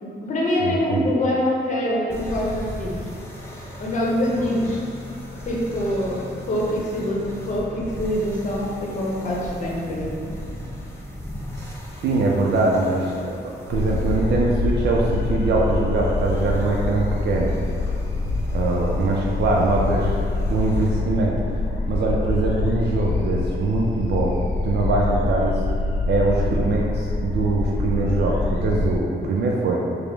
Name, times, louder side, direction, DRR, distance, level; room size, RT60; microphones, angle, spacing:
voice 1, 0.0-2.9 3.8-4.8 5.5-10.1, left 1 dB, 40° left, -4 dB, 0.8 m, -24 dB
voice 2, 0.6-1.1 11.5-11.7 12.0-17.5 18.5-20.2 20.5-24.4 24.6-25.6 26.1-29.8, right 2 dB, 65° right, -2 dB, 0.4 m, -22 dB
sound 1, 2.1-20.9, equal, 15° left, 0.5 m, -36 dB
sound 2, 13.7-29.0, left 3 dB, 80° left, 0.6 m, -25 dB
4.8 x 2.0 x 3.3 m, 2.4 s
wide cardioid pair, 145°, 19 cm